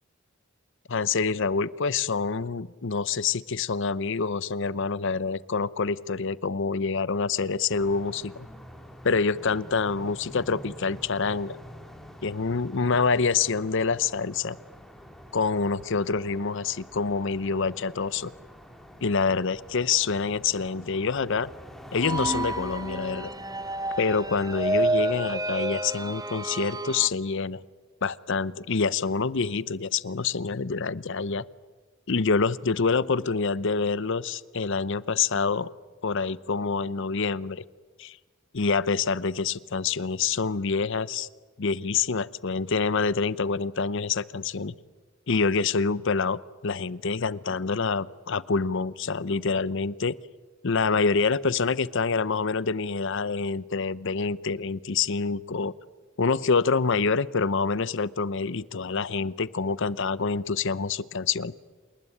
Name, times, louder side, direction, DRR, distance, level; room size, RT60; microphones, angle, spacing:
voice 1, 0.9-8.5 9.0-11.6 12.2-14.6 15.3-18.3 19.0-21.5 21.9-23.3 24.0-27.6 28.0-31.4 32.1-35.7 36.0-37.6 38.0-38.2 38.5-41.3 41.6-44.7 45.3-50.1 50.6-55.7 56.2-61.5, left 4 dB, 65° left, 19 dB, 0.7 m, -26 dB
sound 1, 7.7-25.4, equal, ahead, 3.1 m, -46 dB
sound 2, 22.0-27.1, right 1 dB, 20° right, 0.9 m, -29 dB
28.5 x 20.0 x 9.9 m, 1.4 s
head